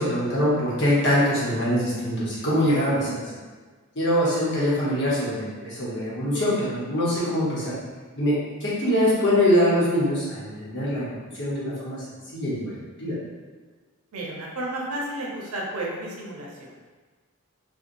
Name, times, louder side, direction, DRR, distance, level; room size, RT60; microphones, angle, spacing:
voice 1, 0.0-3.2 3.9-7.7 8.1-11.1 11.3-12.0 12.3-12.7 13.0-13.1, equal, 55° left, -8 dB, 0.9 m, -23 dB
voice 2, 14.1-16.7, right 1 dB, 90° right, -2 dB, 0.6 m, -32 dB
2.9 x 2.2 x 2.5 m, 1.4 s
head